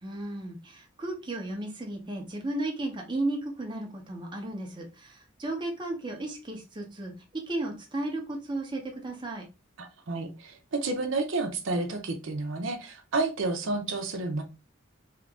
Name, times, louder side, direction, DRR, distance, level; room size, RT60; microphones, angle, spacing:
voice 1, 0.0-9.4, right 2 dB, 25° right, 1 dB, 0.7 m, -34 dB
voice 2, 9.8-14.4, right 3 dB, 80° right, 5 dB, 0.6 m, -30 dB
2.9 x 2.5 x 3.4 m, 0.29 s
head